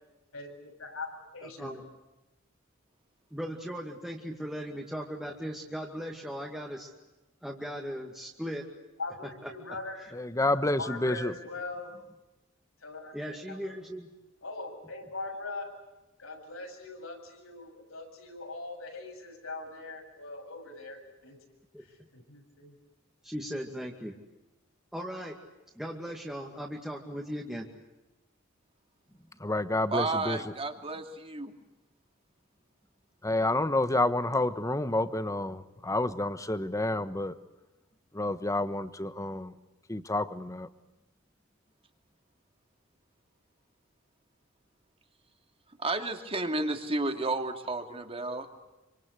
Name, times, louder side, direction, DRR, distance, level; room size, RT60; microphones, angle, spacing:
voice 1, 0.3-1.8 9.0-11.9 12.8-13.7 14.4-15.7 16.2-21.4 21.8-22.7, left 3 dB, 85° left, 7.9 m, -41 dB
voice 2, 1.4-1.8 3.3-6.9 7.4-8.7 9.4-9.5 13.1-14.1 21.7-21.8 23.2-24.1 24.9-25.4 25.7-27.7, equal, 5° right, 2.3 m, -38 dB
voice 3, 10.2-11.3 29.4-30.4 33.2-37.4 38.1-39.5 39.9-40.7, left 2 dB, 15° left, 1.2 m, -29 dB
voice 4, 29.9-31.5 45.8-48.5, right 2 dB, 30° right, 2.6 m, -32 dB
27.0 x 25.5 x 8.3 m
head